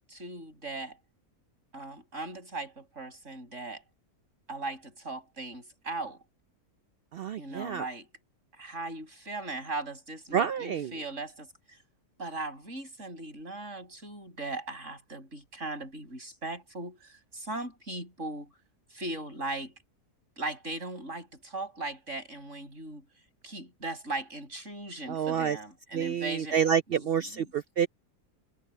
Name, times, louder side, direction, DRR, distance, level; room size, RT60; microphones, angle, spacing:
voice 1, 0.1-1.0 1.7-3.8 4.5-6.2 7.4-8.1 8.6-11.5 12.2-18.5 18.9-19.7 20.4-23.0 23.4-26.5 26.9-27.0 27.3-27.4, right 2 dB, 50° right, 8.2 m, -38 dB
voice 2, 7.1-7.9 10.3-10.9 25.1-25.6 25.9-27.9, right 8 dB, 85° right, 0.5 m, -28 dB
omnidirectional pair, 1.6 m